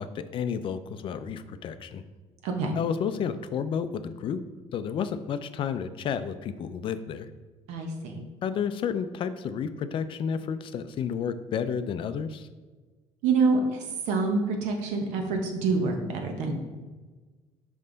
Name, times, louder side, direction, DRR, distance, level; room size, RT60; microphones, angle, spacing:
voice 1, 0.0-2.0 2.8-4.4 4.7-7.3 8.4-12.5, left 7 dB, 45° left, 11 dB, 0.4 m, -31 dB
voice 2, 2.4-2.7 7.7-8.2 13.2-16.5, right 4 dB, 85° right, 3 dB, 1.1 m, -26 dB
5.5 x 5.4 x 3.9 m, 1.3 s
cardioid pair, 125°, 12 cm